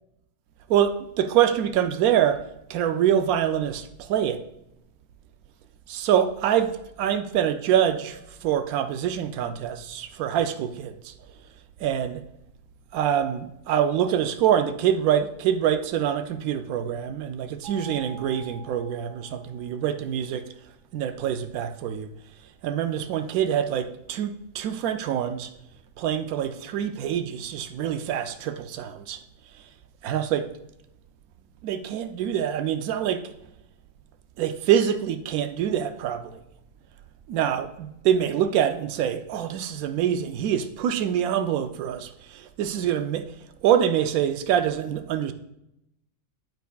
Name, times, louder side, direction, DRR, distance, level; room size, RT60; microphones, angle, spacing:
voice 1, 0.7-2.4 2.7-4.4 5.9-11.1 11.8-12.2 12.9-20.5 20.9-22.1 22.6-25.5 26.0-29.2 30.0-30.5 31.6-33.3 34.4-36.4 37.3-43.3 43.6-45.3, right 9 dB, 85° right, 8 dB, 1.0 m, -25 dB
sound 1, 17.6-19.9, right 2 dB, 55° right, 3.1 m, -45 dB
9.1 x 8.0 x 2.3 m, 0.82 s
omnidirectional pair, 1.5 m